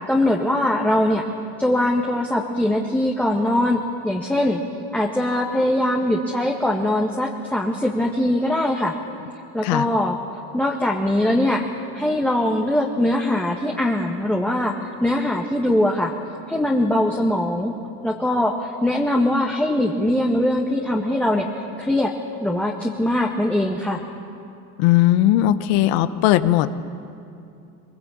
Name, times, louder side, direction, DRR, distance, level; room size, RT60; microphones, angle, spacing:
voice 1, 0.1-1.3 1.6-4.6 4.9-8.9 9.5-10.2 10.5-11.6 11.9-16.1 16.5-17.7 18.0-21.5 21.8-22.1 22.4-24.0, left 1 dB, 5° left, -1 dB, 1.9 m, -21 dB
voice 2, 24.8-26.7, left 14 dB, 75° left, 12 dB, 1.2 m, -18 dB
22.0 x 21.5 x 8.7 m, 2.6 s
supercardioid pair, 90°, 42 cm